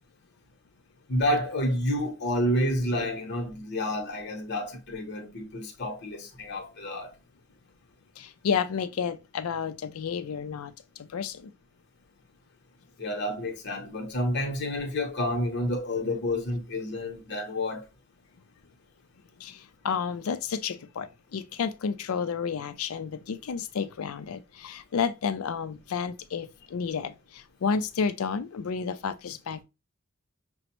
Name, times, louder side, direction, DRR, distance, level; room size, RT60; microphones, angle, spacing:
voice 1, 1.1-7.1 13.0-17.8, left 1 dB, 55° left, 0.9 m, -29 dB
voice 2, 8.2-10.7 11.0-11.5 19.4-29.6, left 6 dB, 75° left, 0.4 m, -31 dB
6.0 x 2.1 x 3.0 m
head